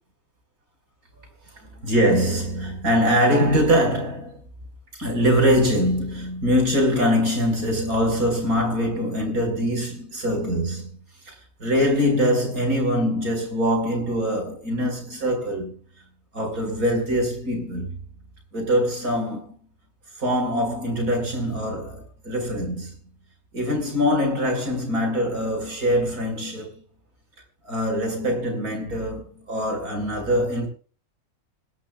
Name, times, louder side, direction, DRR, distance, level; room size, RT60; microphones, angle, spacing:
voice 1, 1.6-4.4 4.9-10.9 11.3-11.4 11.6-15.8 16.3-18.0 18.5-19.6 20.2-22.9 23.5-26.8 27.6-30.7, equal, 85° right, 5.4 m, -23 dB
26.0 x 12.0 x 2.3 m
omnidirectional pair, 1.5 m